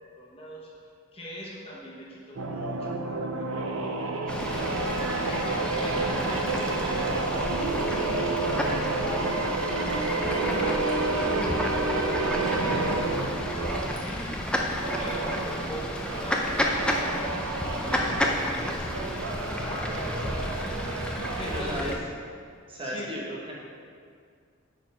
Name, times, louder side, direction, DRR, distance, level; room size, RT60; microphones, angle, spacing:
voice 1, 0.2-0.7 1.1-4.4 4.9-8.3 9.0-10.0 10.4-14.4 15.0-20.7 21.4-22.0 22.8-23.1, equal, 25° left, -4 dB, 1.0 m, -42 dB
sound 1, 2.4-14.0 14.7-21.8, right 3 dB, 80° right, 0.7 m, -30 dB
Fowl / Bird, 4.3-22.0, left 1 dB, 5° left, 0.5 m, -31 dB
voice 2, 21.4-21.9 22.7-23.5, equal, 25° right, -4 dB, 1.3 m, -34 dB
9.1 x 4.6 x 5.6 m, 2.2 s
head